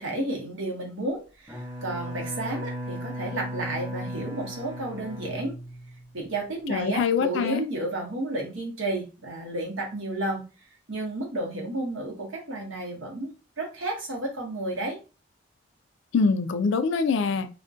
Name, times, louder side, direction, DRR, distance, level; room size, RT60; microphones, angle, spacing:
voice 1, 0.0-5.5 6.1-10.4 10.9-15.0, right 1 dB, 85° right, 0.9 m, -32 dB
Bowed string instrument, 1.5-6.2, equal, 10° right, 0.7 m, -36 dB
voice 2, 6.7-7.6 16.1-17.5, left 5 dB, 70° left, 0.3 m, -24 dB
2.4 x 2.1 x 2.4 m
head